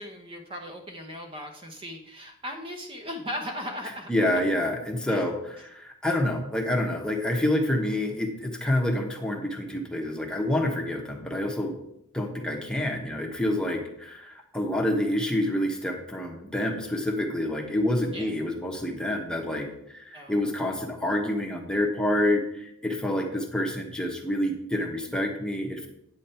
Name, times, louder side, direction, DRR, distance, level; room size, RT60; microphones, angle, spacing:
voice 1, 0.0-4.4 5.1-5.2 6.1-6.2 18.1-18.3 20.1-20.5, equal, 25° right, 3 dB, 0.9 m, -38 dB
voice 2, 4.1-11.7 12.1-25.9, left 1 dB, 5° left, 1 dB, 1.1 m, -28 dB
9.3 x 7.2 x 4.4 m, 0.78 s
head